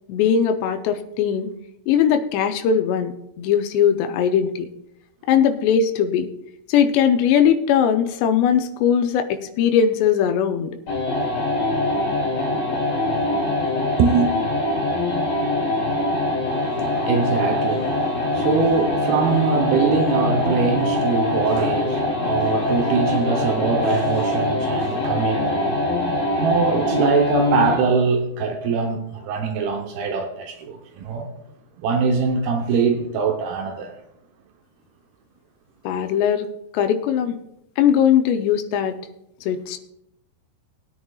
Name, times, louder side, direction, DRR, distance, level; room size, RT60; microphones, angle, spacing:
voice 1, 0.1-1.5 1.9-4.7 5.3-6.3 6.7-10.7 35.8-36.5 36.7-37.4 37.8-39.0 39.4-39.8, left 8 dB, 85° left, 2.9 m, -19 dB
sound 1, 10.9-27.9, left 2 dB, 55° left, 4.8 m, -23 dB
voice 2, 14.0-14.3 16.5-25.8 26.4-31.3 31.8-33.9, right 5 dB, 75° right, 2.7 m, -22 dB
20.5 x 9.4 x 2.4 m
omnidirectional pair, 4.8 m